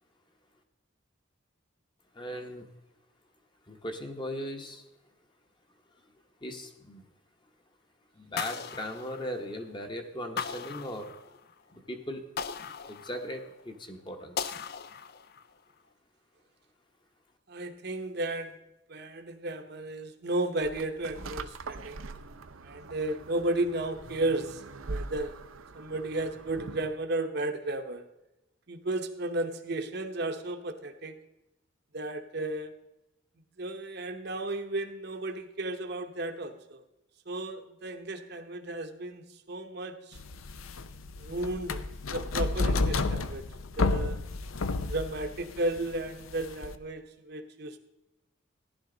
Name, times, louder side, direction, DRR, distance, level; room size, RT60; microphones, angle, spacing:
voice 1, 2.1-2.7 3.7-4.9 6.4-7.0 8.1-11.1 11.7-12.2 12.9-14.6, equal, 25° left, 4 dB, 1.0 m, -38 dB
sound 1, 8.4-9.7 10.4-11.5 12.4-13.6 14.4-15.5, left 7 dB, 50° left, 0.4 m, -38 dB
voice 2, 17.5-18.5 18.9-22.1 22.6-24.6 24.9-25.3 25.7-28.1 28.7-31.2 31.9-32.7 33.6-36.8 37.3-40.2 41.2-41.8 42.1-43.5 43.8-44.2 44.9-47.8, right 2 dB, 50° right, 5 dB, 0.9 m, -34 dB
sound 2, 20.6-27.0, right 3 dB, 80° right, 0.7 m, -43 dB
sound 3, 40.2-46.8, left 3 dB, 85° left, 0.7 m, -31 dB
15.0 x 11.0 x 3.9 m, 0.94 s
head